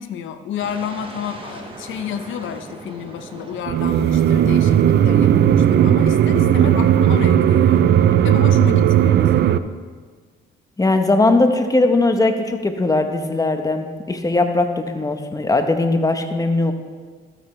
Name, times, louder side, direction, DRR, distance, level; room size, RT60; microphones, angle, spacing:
voice 1, 0.0-7.9 8.2-9.6, left 8 dB, 80° left, 10 dB, 0.7 m, -31 dB
sound 1, 0.6-8.5, right 2 dB, 25° right, 1.3 m, -41 dB
sound 2, 3.7-9.6, right 10 dB, 60° right, 0.4 m, -15 dB
voice 2, 10.8-16.7, left 2 dB, 20° left, 6 dB, 0.9 m, -19 dB
12.5 x 8.9 x 3.2 m, 1.5 s
cardioid pair, 90°, 20 cm